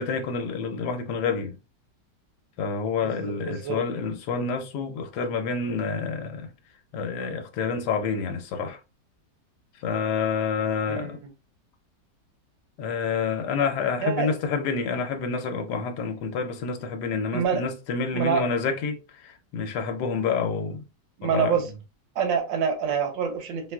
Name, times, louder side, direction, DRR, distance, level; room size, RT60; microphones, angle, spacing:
voice 1, 0.0-1.6 2.6-6.5 6.9-8.8 9.8-11.2 12.8-20.8 21.2-21.6, left 5 dB, 75° left, 1.1 m, -28 dB
voice 2, 3.0-3.8 10.9-11.1 14.0-14.3 17.3-17.6 18.1-18.4 21.2-21.7 22.2-23.7, right 6 dB, 90° right, 1.5 m, -26 dB
3.7 x 2.3 x 2.3 m
omnidirectional pair, 1.9 m